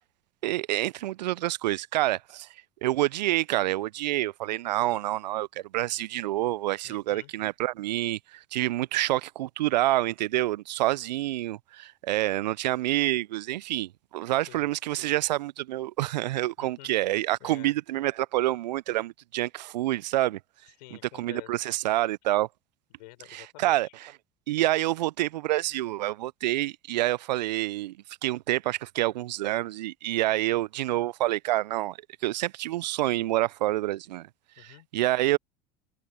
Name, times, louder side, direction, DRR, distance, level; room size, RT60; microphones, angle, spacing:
voice 1, 0.4-2.5 2.8-5.5 5.7-20.4 21.2-22.5 23.3-23.9 24.5-28.0 28.2-32.0 32.2-34.3 34.9-35.4, right 16 dB, 80° right, 0.5 m, -27 dB
voice 2, 6.8-7.3 14.5-14.7 16.6-16.9 17.4-17.7 20.8-21.7 22.9-23.9 34.6-34.9, left 20 dB, 75° left, 6.0 m, -49 dB
hypercardioid pair, 80°, 21 cm